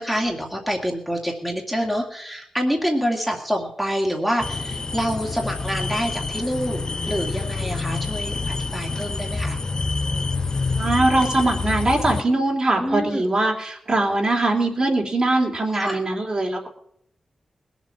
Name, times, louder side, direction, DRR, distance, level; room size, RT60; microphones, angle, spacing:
voice 1, 0.0-6.8 7.1-9.6 12.8-13.2 15.7-16.0, equal, 5° right, -1 dB, 2.5 m, -26 dB
sound 1, 4.4-12.2, left 3 dB, 35° left, 0.7 m, -27 dB
voice 2, 10.8-16.7, right 2 dB, 40° right, 0 dB, 3.5 m, -21 dB
20.0 x 7.5 x 7.4 m, 0.70 s
wide cardioid pair, 95°, 2 cm